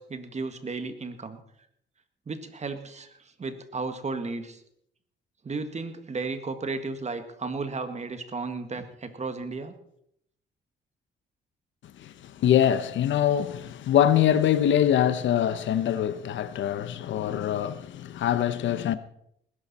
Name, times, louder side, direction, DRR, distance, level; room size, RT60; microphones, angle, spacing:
voice 1, 0.0-1.4 2.3-4.6 5.4-9.7, right 3 dB, 35° right, 1.9 m, -34 dB
voice 2, 12.0-19.0, left 10 dB, 70° left, 1.0 m, -24 dB
19.5 x 11.5 x 4.3 m
cardioid pair, 90°, 20 cm